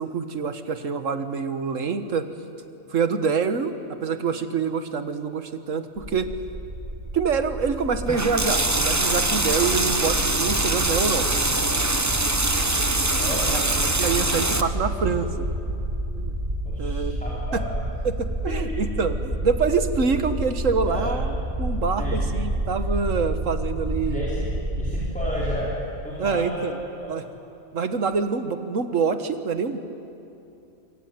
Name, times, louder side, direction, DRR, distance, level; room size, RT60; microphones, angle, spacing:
voice 1, 0.0-2.3 2.9-3.7 4.0-6.3 7.1-11.3 12.5-12.7 13.2-13.6 14.0-15.3 16.2-16.4 16.8-17.2 17.5-17.6 18.0-21.3 21.6-24.3 26.2-26.8 27.1-27.2 27.7-29.8, right 5 dB, 65° right, 9 dB, 1.8 m, -26 dB
sound 1, 6.0-25.6, right 1 dB, 35° right, 3.2 m, -29 dB
sound 2, 8.1-14.6, right 2 dB, 15° right, 0.9 m, -23 dB
voice 2, 16.6-17.8 18.9-19.0 20.9-21.2 22.0-22.2 24.1-24.5 24.7-26.7 27.0-27.1, equal, 5° left, -7 dB, 4.7 m, -32 dB
25.5 x 24.5 x 9.5 m, 2.8 s
omnidirectional pair, 1.5 m